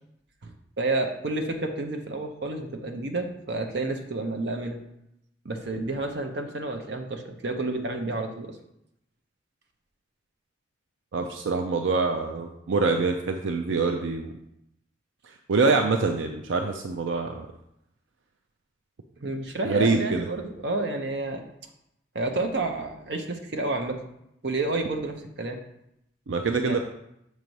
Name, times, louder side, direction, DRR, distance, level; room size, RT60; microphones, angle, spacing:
voice 1, 0.4-4.8 5.4-8.5 19.2-21.4 22.1-24.0 24.4-25.6 26.6-26.8, right 2 dB, 65° right, 4 dB, 0.8 m, -30 dB
voice 2, 11.1-14.3 15.5-17.5 19.6-20.3 26.3-26.8, right 4 dB, 90° right, 4 dB, 0.5 m, -25 dB
6.6 x 3.1 x 5.2 m, 0.80 s
head